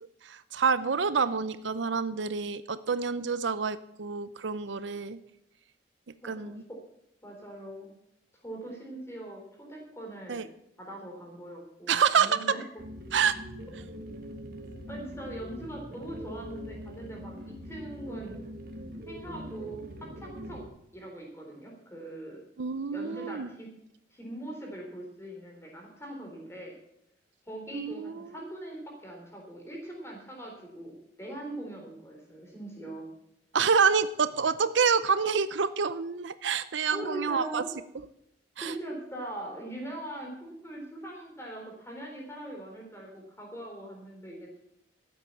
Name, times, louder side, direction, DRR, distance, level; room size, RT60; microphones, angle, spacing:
voice 1, 0.2-5.2 6.2-6.6 10.3-10.5 11.9-12.4 13.1-13.3 22.6-23.5 27.7-28.3 33.5-37.6 38.6-38.7, right 6 dB, 70° right, 14 dB, 0.6 m, -27 dB
voice 2, 6.2-6.8 7.2-7.9 8.4-10.5 10.8-12.6 14.9-18.4 19.0-19.8 20.2-20.6 20.9-22.4 22.9-23.7 24.1-26.7 27.5-33.0 36.9-37.7 38.6-44.6, right 1 dB, 15° left, 0 dB, 3.9 m, -41 dB
sound 1, 12.8-20.7, equal, 50° right, 2.0 m, -42 dB
13.5 x 9.1 x 7.1 m, 0.79 s
head